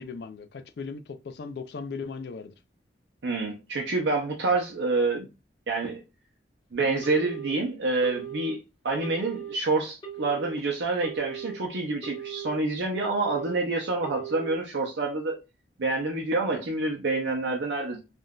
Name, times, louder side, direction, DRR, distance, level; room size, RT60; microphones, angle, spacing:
voice 1, 0.0-2.5, left 5 dB, 60° left, 0.4 m, -37 dB
voice 2, 3.2-5.3 5.7-6.0 6.7-8.6 8.8-15.4 15.8-18.0, right 3 dB, 75° right, 0.7 m, -27 dB
Telephone, 7.0-7.5 8.0-8.5 9.0-9.5 10.0-10.5 11.0-11.5 12.0-12.5 13.0-13.5 14.0-14.5, right 9 dB, 25° left, 1.0 m, -38 dB
3.6 x 2.6 x 2.2 m
head